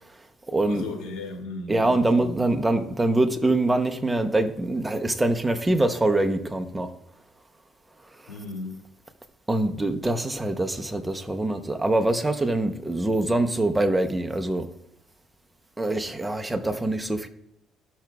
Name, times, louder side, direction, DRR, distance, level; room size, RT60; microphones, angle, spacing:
voice 1, 0.0-0.9 1.7-6.9 8.1-8.3 9.5-14.7 15.8-17.3, right 2 dB, 10° right, 0.8 m, -24 dB
voice 2, 0.6-2.4 8.3-8.8, left 2 dB, 85° left, 2.1 m, -36 dB
14.0 x 5.9 x 2.4 m
cardioid pair, 85°, 0 cm